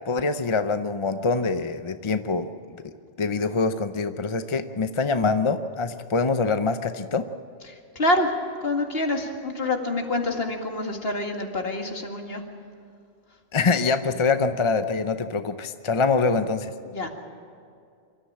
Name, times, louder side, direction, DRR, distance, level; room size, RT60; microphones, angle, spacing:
voice 1, 0.1-2.9 3.2-7.3 13.5-16.7, left 4 dB, 35° left, 9 dB, 0.6 m, -24 dB
voice 2, 8.6-12.4 16.9-17.1, left 1 dB, 60° left, 3 dB, 2.2 m, -26 dB
26.0 x 13.5 x 8.7 m, 2.4 s
omnidirectional pair, 1.2 m